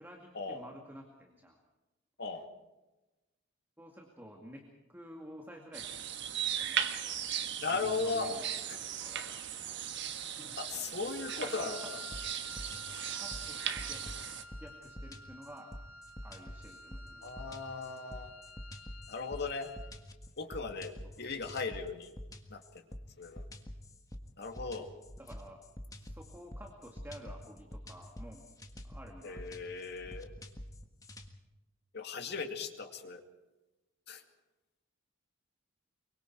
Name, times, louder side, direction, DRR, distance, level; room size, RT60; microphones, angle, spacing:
voice 1, 0.0-1.6 3.8-6.0 6.6-6.8 7.7-8.5 8.8-9.3 10.4-10.6 11.4-11.9 13.2-15.8 16.2-17.5 21.0-21.5 24.8-28.5 28.8-29.5, equal, 10° right, 1 dB, 2.2 m, -51 dB
sound 1, 5.7-14.4, right 9 dB, 60° right, 1.4 m, -38 dB
voice 2, 7.6-8.4 10.6-12.0 17.2-18.3 19.1-19.7 20.4-22.1 22.5-22.8 23.2-23.4 24.4-24.9 29.2-30.3 31.9-33.2 34.1-34.2, left 4 dB, 55° left, 5 dB, 2.2 m, -37 dB
Wind instrument woodwind instrument, 11.1-20.0, left 3 dB, 80° left, 2.9 m, -52 dB
sound 2, 12.1-31.3, left 1 dB, 20° left, 1.6 m, -47 dB
25.0 x 23.5 x 4.6 m, 1.1 s
head